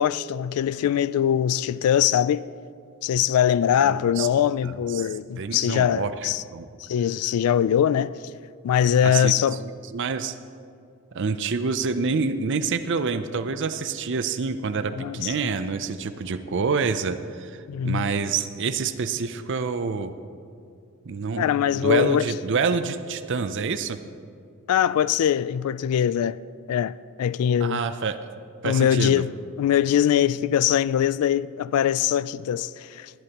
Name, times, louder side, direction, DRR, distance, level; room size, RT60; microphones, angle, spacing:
voice 1, 0.0-2.5 3.0-6.4 6.9-8.1 8.6-9.6 15.0-15.3 17.7-18.1 21.4-22.2 24.7-26.4 26.7-27.8 28.6-29.3 29.6-33.1, left 9 dB, 85° left, 0.3 m, -22 dB
voice 2, 3.8-4.3 4.6-5.1 5.4-6.1 6.5-6.7 9.0-9.3 9.9-10.3 11.1-20.1 21.1-21.5 21.8-24.0 27.6-28.2 28.6-29.2, right 5 dB, 55° right, 0.5 m, -27 dB
20.0 x 11.0 x 3.0 m
head